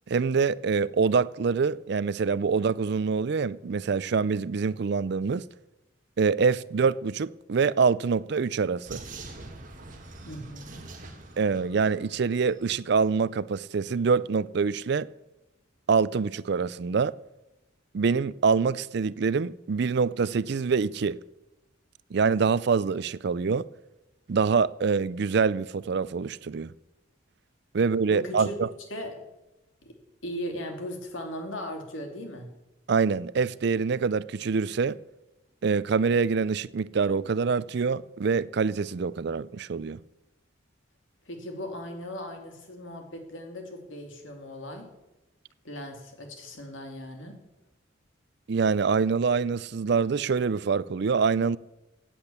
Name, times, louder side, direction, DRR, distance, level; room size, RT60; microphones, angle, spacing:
voice 1, 0.1-5.4 6.2-9.0 11.4-15.1 15.9-17.1 17.9-21.2 22.1-23.6 24.3-26.7 27.7-28.7 32.9-35.0 35.6-40.0 48.5-51.6, right 5 dB, 55° right, 0.4 m, -25 dB
Vehicle, 8.8-12.8, right 3 dB, 40° right, 2.0 m, -44 dB
voice 2, 10.2-10.7 28.1-28.5 28.9-29.2 29.8-29.9 30.2-32.5 41.3-44.9 45.6-47.4, equal, 75° left, 2.9 m, -38 dB
16.5 x 8.7 x 7.1 m
head